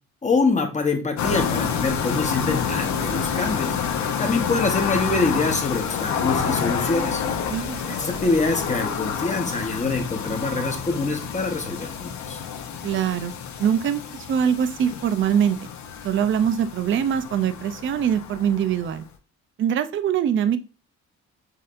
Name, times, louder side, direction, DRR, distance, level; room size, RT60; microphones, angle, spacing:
voice 1, 0.2-3.8 4.2-7.2 7.9-12.4, left 3 dB, 25° left, 4 dB, 0.9 m, -25 dB
sound 1, 1.2-19.0, left 6 dB, 70° left, 0.9 m, -28 dB
voice 2, 7.5-7.8 12.8-13.3 13.6-15.7 16.0-19.0 19.6-20.6, right 8 dB, 40° right, 11 dB, 0.4 m, -23 dB
6.5 x 2.7 x 2.5 m, 0.33 s
cardioid pair, 125°, 30 cm